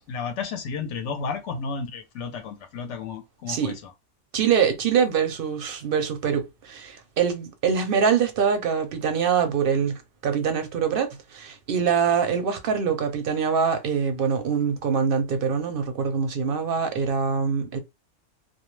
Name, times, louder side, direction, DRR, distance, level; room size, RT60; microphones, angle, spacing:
voice 1, 0.1-3.9, left 5 dB, 75° left, 0.9 m, -32 dB
voice 2, 4.3-17.8, right 6 dB, 55° right, 0.7 m, -24 dB
2.3 x 2.2 x 3.0 m
omnidirectional pair, 1.3 m